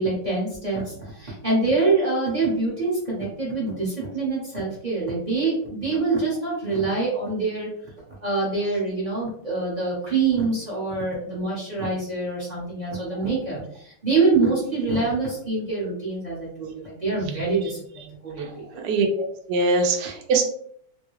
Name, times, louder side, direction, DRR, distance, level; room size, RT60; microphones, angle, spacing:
voice 1, 0.0-7.7 8.2-18.8, right 3 dB, 35° right, -6 dB, 0.7 m, -25 dB
voice 2, 19.5-20.5, right 3 dB, 75° right, 3 dB, 0.9 m, -21 dB
3.4 x 2.2 x 3.1 m, 0.66 s
omnidirectional pair, 2.4 m